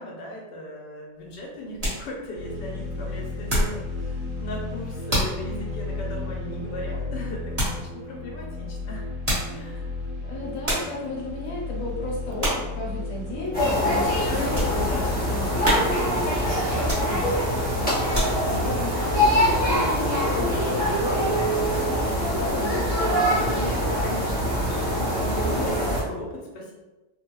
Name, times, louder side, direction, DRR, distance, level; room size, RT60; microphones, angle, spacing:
voice 1, 0.0-9.0 9.5-9.9 14.1-15.2 18.3-19.0 23.0-26.7, left 1 dB, 80° left, -2 dB, 1.3 m, -38 dB
sound 1, 1.2-3.9 4.2-4.6 5.1-5.5 5.9-6.0 7.5-7.9 9.0-9.6 10.2-10.3 10.6-11.0 11.5-11.8 12.4-12.8 13.2-13.3 13.9-14.8 15.2-15.3 15.6-16.2 16.8-17.4 17.9-18.6 19.1-19.2, equal, 25° right, 1.2 m, -28 dB
sound 2, 2.3-18.7, left 3 dB, 60° right, 1.3 m, -34 dB
voice 2, 10.3-14.8 15.1-17.9 18.4-22.9, left 1 dB, 60° left, -3 dB, 1.0 m, -34 dB
sound 3, 13.5-26.0, equal, 5° left, 0.9 m, -24 dB
3.3 x 2.2 x 3.0 m, 1.1 s
omnidirectional pair, 1.8 m